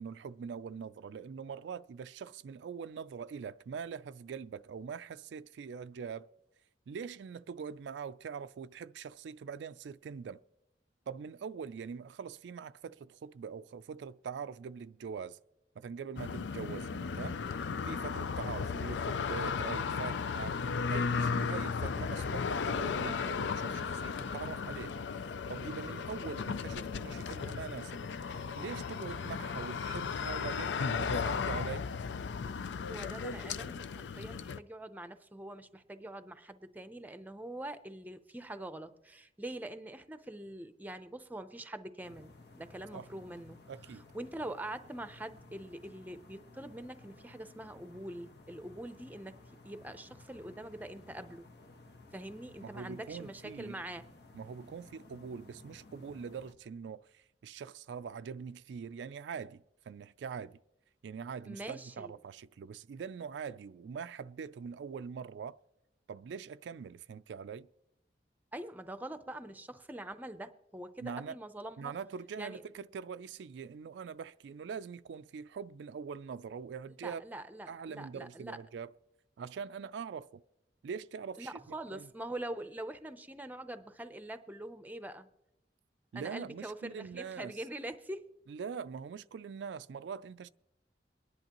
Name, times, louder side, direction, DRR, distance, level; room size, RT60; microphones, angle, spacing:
voice 1, 0.0-6.3 6.9-10.4 11.1-15.4 15.8-17.4 17.9-20.6 20.9-31.9 42.9-43.1 43.7-44.0 52.6-53.8 54.3-60.6 61.0-65.6 66.1-67.7 71.0-71.4 71.8-77.2 77.7-78.9 79.4-80.4 80.8-82.1 86.1-87.5 88.5-90.5, right 6 dB, 85° right, 0.3 m, -43 dB
sound 1, 16.2-34.6, left 5 dB, 90° left, 0.4 m, -35 dB
voice 2, 32.9-43.6 44.1-49.4 49.6-51.5 52.1-54.0 61.5-62.1 68.5-71.9 72.4-72.6 77.0-78.6 81.4-85.3 86.1-88.2, right 1 dB, 10° right, 0.6 m, -44 dB
sound 2, 42.0-56.5, left 2 dB, 70° left, 1.2 m, -56 dB
23.5 x 10.5 x 3.0 m
head